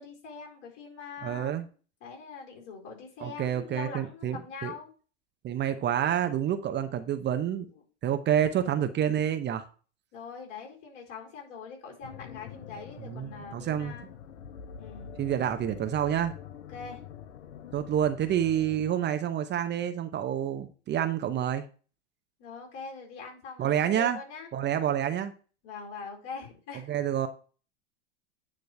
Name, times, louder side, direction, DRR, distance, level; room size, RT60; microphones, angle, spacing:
voice 1, 0.0-1.7 2.0-4.9 10.1-14.1 14.8-15.1 16.7-17.0 22.4-24.5 25.6-26.9, left 5 dB, 55° left, 4.4 m, -43 dB
voice 2, 1.2-1.6 3.2-4.7 5.4-7.7 8.0-9.6 13.1-13.9 15.2-16.3 17.7-21.6 23.6-24.2 24.5-25.3 26.9-27.3, right 10 dB, 30° right, 0.8 m, -28 dB
sound 1, 12.0-18.9, left 8 dB, 80° left, 0.9 m, -45 dB
9.5 x 3.2 x 6.6 m
hypercardioid pair, 105°, 36 cm